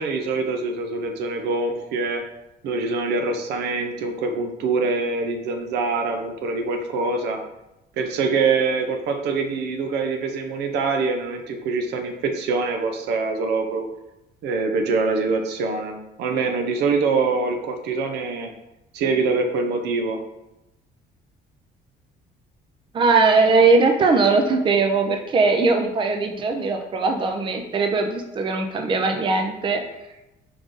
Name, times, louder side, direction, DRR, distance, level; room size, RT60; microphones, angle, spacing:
voice 1, 0.0-2.2 2.6-7.4 8.0-13.9 14.4-18.5 18.9-20.2, right 4 dB, 80° right, 5 dB, 0.6 m, -24 dB
voice 2, 22.9-29.8, right 4 dB, 30° right, 4 dB, 0.5 m, -20 dB
4.9 x 2.6 x 3.7 m, 0.92 s
cardioid pair, 110°, 17 cm